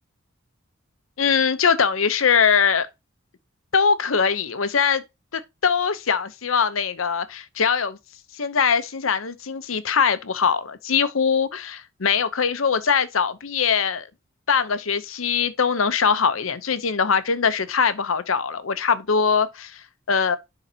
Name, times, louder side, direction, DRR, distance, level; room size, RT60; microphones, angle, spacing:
voice 1, 1.2-2.9 3.7-5.0 5.3-8.0 8.3-14.1 14.5-20.4, left 6 dB, 85° left, 0.8 m, -22 dB
11.0 x 4.0 x 2.8 m
head